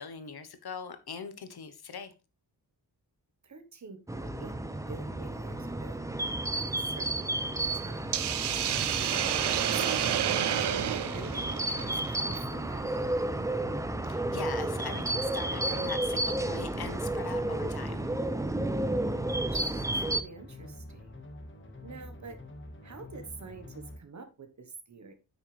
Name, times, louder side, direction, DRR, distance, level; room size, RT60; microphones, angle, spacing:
voice 1, 0.0-2.1 14.0-18.1, left 6 dB, 70° left, 10 dB, 1.1 m, -41 dB
voice 2, 3.4-4.6 4.9-8.2 9.0-9.3 9.7-13.3 19.1-21.1 21.8-22.4 22.8-25.1, right 5 dB, 45° right, 7 dB, 1.3 m, -47 dB
sound 1, 4.1-20.2, right 1 dB, 10° right, 0.4 m, -32 dB
sound 2, 4.2-24.0, left 1 dB, 30° left, 1.7 m, -46 dB
Hiss, 8.1-12.4, right 10 dB, 80° right, 0.7 m, -30 dB
8.8 x 6.4 x 3.3 m, 0.29 s
wide cardioid pair, 165°, 40 cm